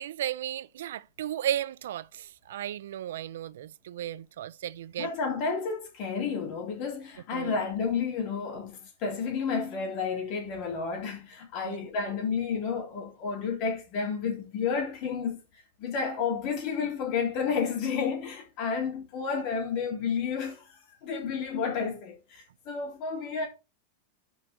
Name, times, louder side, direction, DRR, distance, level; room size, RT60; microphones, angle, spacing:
voice 1, 0.0-5.1 7.3-7.5 11.6-11.8, right 11 dB, 80° right, 0.4 m, -34 dB
voice 2, 5.0-15.4 15.8-23.5, left 5 dB, 40° left, 3.3 m, -31 dB
5.8 x 5.5 x 5.7 m
supercardioid pair, 165°, 0 cm